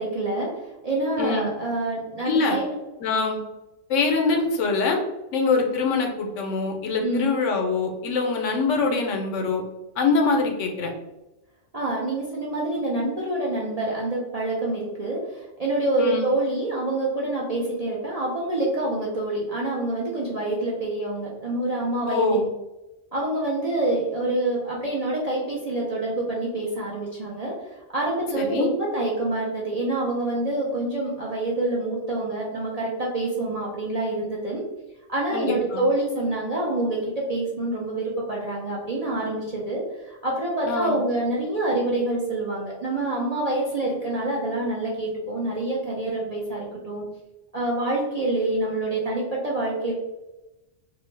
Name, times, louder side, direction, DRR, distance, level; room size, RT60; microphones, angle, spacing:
voice 1, 0.0-2.7 3.1-3.2 7.0-7.3 11.7-22.4 23.1-34.6 35.1-47.1 47.5-49.9, right 2 dB, 50° right, -5 dB, 0.5 m, -26 dB
voice 2, 1.2-1.5 2.2-2.6 3.0-3.4 3.9-5.0 5.3-9.6 10.0-10.9 16.0-16.3 22.1-22.5 28.4-28.7 35.3-35.8 40.7-41.0, left 4 dB, 85° left, 3 dB, 1.0 m, -24 dB
2.6 x 2.2 x 3.1 m, 1.0 s
omnidirectional pair, 1.3 m